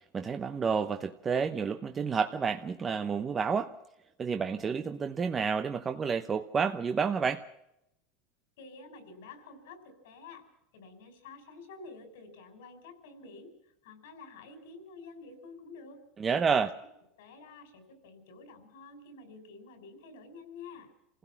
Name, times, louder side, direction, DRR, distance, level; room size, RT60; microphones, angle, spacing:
voice 1, 0.1-3.7 4.2-7.4 16.2-16.7, right 6 dB, 20° right, 7 dB, 0.8 m, -30 dB
voice 2, 8.6-10.4 10.7-13.5 13.8-16.0 16.5-16.7 17.2-20.9, left 4 dB, 85° left, 7 dB, 6.1 m, -49 dB
27.0 x 16.5 x 5.9 m, 0.84 s
supercardioid pair, 150°, 0 cm